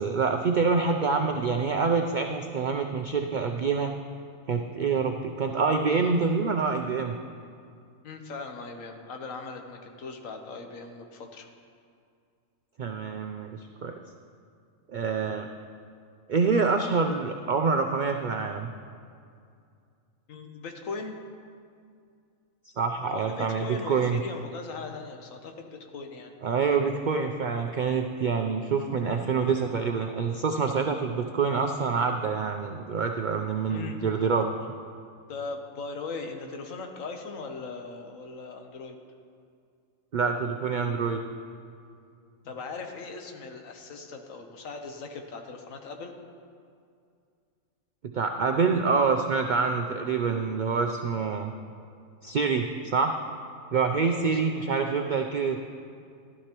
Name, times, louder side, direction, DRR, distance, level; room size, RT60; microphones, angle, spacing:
voice 1, 0.0-3.9 4.5-7.2 12.8-14.0 14.9-15.5 16.3-18.7 22.8-24.2 26.4-34.5 40.1-41.2 48.1-51.5 52.2-53.1 53.7-55.6, right 5 dB, 70° right, 4 dB, 0.4 m, -26 dB
voice 2, 8.0-11.5 20.3-21.2 23.0-26.3 33.7-34.0 34.5-34.6 35.3-39.0 42.4-46.2 54.0-54.5, left 4 dB, 80° left, 4 dB, 1.3 m, -39 dB
12.5 x 12.5 x 3.0 m, 2.3 s
omnidirectional pair, 1.4 m